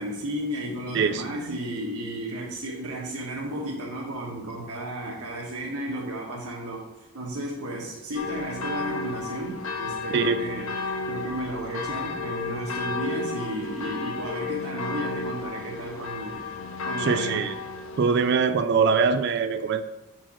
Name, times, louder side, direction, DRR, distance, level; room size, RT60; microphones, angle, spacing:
voice 1, 0.0-16.4 16.8-17.5, right 1 dB, 90° right, -2 dB, 1.2 m, -33 dB
voice 2, 0.9-1.6 10.1-10.4 17.0-17.5 18.0-19.8, right 5 dB, 50° right, 10 dB, 0.3 m, -23 dB
sound 1, 8.1-18.4, left 4 dB, 65° left, 0.8 m, -33 dB
5.7 x 4.6 x 5.8 m, 0.99 s
head